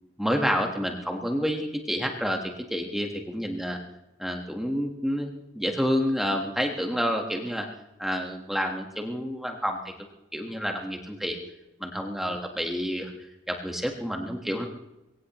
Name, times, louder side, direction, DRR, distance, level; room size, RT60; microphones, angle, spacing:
voice 1, 0.2-3.8 4.2-7.7 8.0-9.9 10.3-11.4 11.8-13.1 13.5-14.7, equal, ahead, 2 dB, 1.4 m, -29 dB
22.0 x 17.0 x 3.1 m, 0.92 s
head